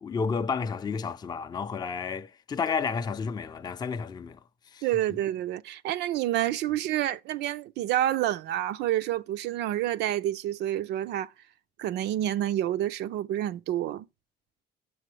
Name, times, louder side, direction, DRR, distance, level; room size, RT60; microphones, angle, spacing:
voice 1, 0.0-4.4 4.7-4.8, left 5 dB, 25° left, 0.4 m, -31 dB
voice 2, 4.8-11.3 11.8-14.1, right 13 dB, 80° right, 0.5 m, -28 dB
7.5 x 6.3 x 3.2 m
cardioid pair, 115°, 17 cm